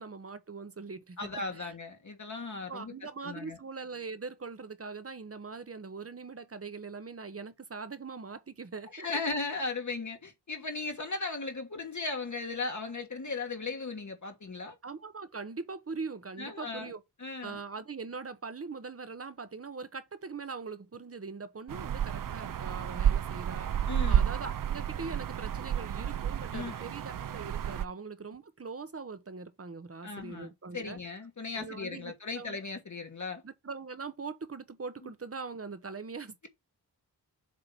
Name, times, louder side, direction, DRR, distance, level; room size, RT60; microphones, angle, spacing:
voice 1, 0.0-1.2 1.5-1.7 2.7-9.1 14.8-17.0 17.4-31.0 31.5-32.6 33.4-36.5, right 4 dB, 35° right, 1.0 m, -42 dB
voice 2, 1.2-3.6 8.9-14.8 16.4-16.9 17.2-17.6 23.9-24.3 26.5-26.9 30.0-33.4 35.0-35.1, left 3 dB, 45° left, 1.4 m, -37 dB
sound 1, 21.7-27.8, right 9 dB, 55° right, 0.5 m, -31 dB
7.5 x 2.9 x 5.3 m
wide cardioid pair, 85°, 40 cm